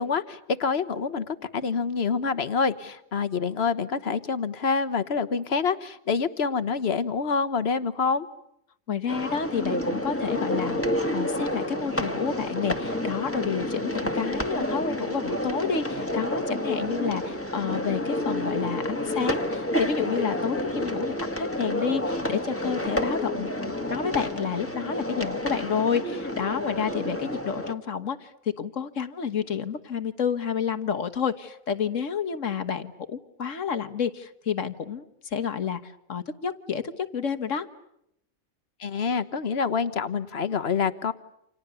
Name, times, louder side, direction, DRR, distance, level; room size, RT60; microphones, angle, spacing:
voice 1, 0.0-8.3 38.8-41.1, left 5 dB, 50° left, 12 dB, 1.4 m, -27 dB
voice 2, 8.9-10.8 11.1-23.5 23.9-37.7, left 7 dB, 65° left, 8 dB, 1.7 m, -30 dB
sound 1, 9.1-27.7, left 1 dB, 10° left, 1.9 m, -29 dB
29.5 x 28.0 x 7.0 m, 0.79 s
omnidirectional pair, 1.4 m